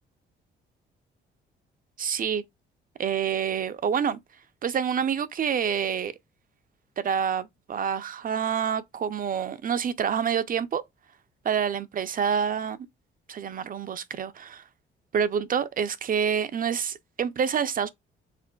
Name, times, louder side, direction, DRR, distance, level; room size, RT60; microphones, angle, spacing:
voice 1, 2.0-2.4 3.0-4.2 4.6-6.1 7.0-10.8 11.4-12.8 13.3-14.6 15.1-17.9, right 7 dB, 45° right, 0.5 m, -27 dB
4.9 x 3.5 x 2.2 m
cardioid pair, 90°, 20 cm